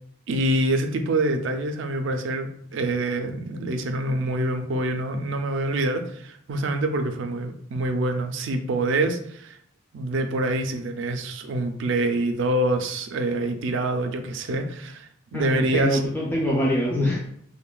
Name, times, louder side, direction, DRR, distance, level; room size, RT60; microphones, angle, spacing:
voice 1, 0.3-9.6 9.9-16.0, right 2 dB, 65° right, 6 dB, 0.3 m, -26 dB
voice 2, 15.3-17.3, left 1 dB, 10° left, -4 dB, 0.4 m, -24 dB
3.1 x 2.1 x 2.2 m, 0.67 s
head